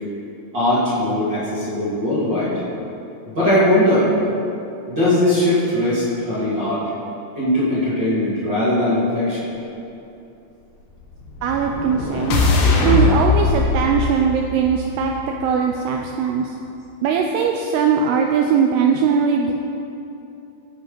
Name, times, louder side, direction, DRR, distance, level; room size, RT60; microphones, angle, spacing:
voice 1, 0.5-2.5 3.3-4.1 4.9-6.8 7.3-9.5, left 1 dB, 35° right, -11 dB, 2.4 m, -19 dB
sound 1, 11.1-15.4, left 3 dB, 90° left, 3.4 m, -20 dB
voice 2, 11.4-12.4 12.8-15.1 15.4-16.4 17.0-19.5, right 6 dB, 80° right, 2 dB, 2.5 m, -20 dB
16.0 x 5.3 x 5.2 m, 2.8 s
omnidirectional pair, 4.8 m